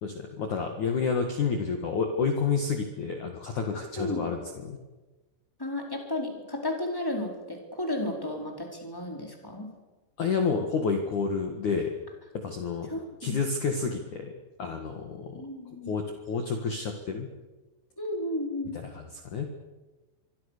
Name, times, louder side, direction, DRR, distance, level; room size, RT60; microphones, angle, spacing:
voice 1, 0.0-4.8 10.2-11.9 12.3-12.9 13.2-14.3 14.6-15.4 15.9-17.3 18.7-19.5, left 5 dB, 55° left, 4 dB, 2.4 m, -29 dB
voice 2, 4.0-4.3 5.6-9.7 12.9-13.4 15.3-16.0 18.0-18.8, left 1 dB, 5° left, 1 dB, 3.9 m, -33 dB
26.5 x 24.0 x 6.8 m, 1.2 s
omnidirectional pair, 5.8 m